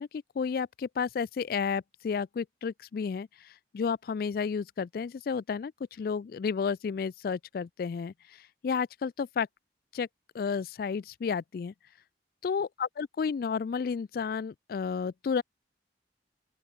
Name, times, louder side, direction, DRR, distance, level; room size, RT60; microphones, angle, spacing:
voice 1, 0.0-8.1 8.6-9.5 9.9-10.1 10.3-11.7 12.4-15.4, left 6 dB, 55° left, 0.3 m, -32 dB
open air
head